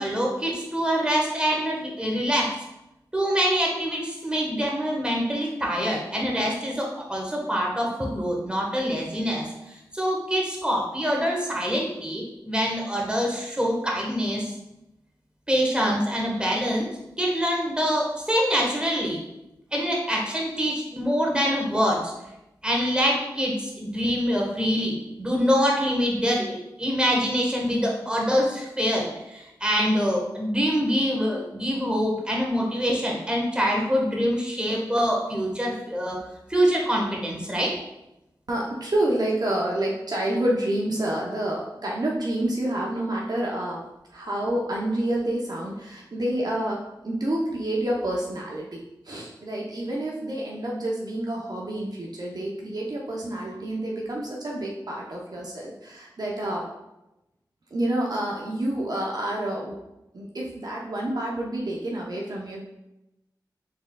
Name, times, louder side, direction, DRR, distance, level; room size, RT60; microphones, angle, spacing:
voice 1, 0.0-2.5 3.1-14.5 15.5-16.9 17.2-19.2 19.7-22.1 22.6-36.2 36.5-37.7, equal, 10° right, -2 dB, 1.2 m, -25 dB
voice 2, 38.5-43.8 44.1-56.7 57.7-59.8 60.1-62.6, right 1 dB, 55° right, -3 dB, 0.7 m, -28 dB
4.2 x 3.6 x 2.3 m, 0.92 s
cardioid pair, 40°, 8 cm